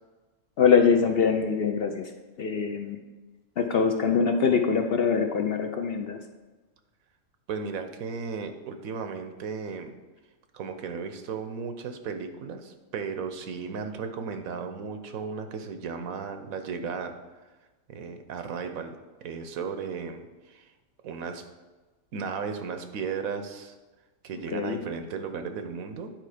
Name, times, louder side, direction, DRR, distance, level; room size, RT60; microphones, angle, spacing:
voice 1, 0.6-2.1 2.4-3.0 3.6-6.2 24.5-24.8, left 6 dB, 60° left, 5 dB, 0.6 m, -23 dB
voice 2, 7.5-9.9 10.5-17.2 17.9-18.9 19.2-20.7 21.0-21.4 22.1-23.7 24.2-26.1, right 5 dB, 85° right, 7 dB, 1.2 m, -35 dB
9.2 x 4.5 x 4.9 m, 1.2 s
omnidirectional pair, 1.4 m